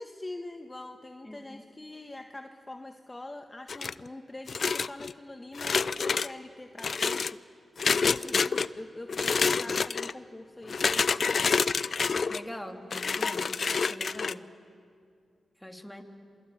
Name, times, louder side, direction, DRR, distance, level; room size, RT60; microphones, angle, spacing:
voice 1, 0.0-7.4 8.0-11.4, left 2 dB, 25° left, 5 dB, 1.5 m, -44 dB
voice 2, 1.3-1.6 12.3-13.5 13.9-14.4 15.6-16.0, left 1 dB, 10° left, 4 dB, 3.3 m, -42 dB
sound 1, 3.7-4.1 4.5-5.1 5.5-6.3 6.8-7.3 7.8-8.7 9.1-10.1 10.7-12.4 12.9-14.3, left 5 dB, 60° left, 0.6 m, -27 dB
27.5 x 23.5 x 8.7 m, 2.4 s
supercardioid pair, 40°, 0 cm